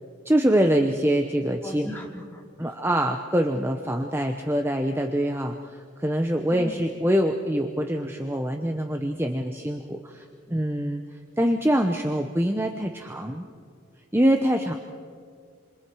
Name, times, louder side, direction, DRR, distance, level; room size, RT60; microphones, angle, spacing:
voice 1, 0.2-1.9 2.6-11.0 11.4-13.5 14.1-14.7, equal, 10° right, 4 dB, 0.9 m, -24 dB
voice 2, 1.6-2.7 6.5-6.8, left 1 dB, 10° left, -1 dB, 2.8 m, -38 dB
27.5 x 27.0 x 4.8 m, 2.1 s
head